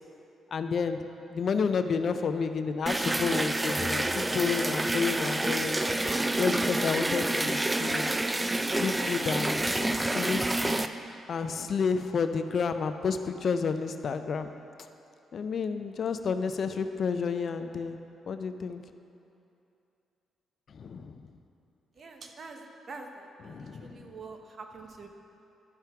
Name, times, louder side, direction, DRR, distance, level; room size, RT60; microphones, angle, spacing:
voice 1, 0.5-1.0 1.3-5.8 6.4-8.1 8.7-10.7 11.3-14.5 15.3-18.0 18.3-18.8 20.7-21.3 23.4-24.1, left 5 dB, 60° left, 8 dB, 0.4 m, -30 dB
sound 1, 2.9-10.9, right 1 dB, 15° right, 0.4 m, -28 dB
voice 2, 22.0-22.6 22.9-25.1, right 3 dB, 55° right, 4 dB, 0.9 m, -45 dB
12.0 x 5.7 x 3.5 m, 2.7 s
cardioid pair, 70°, 0 cm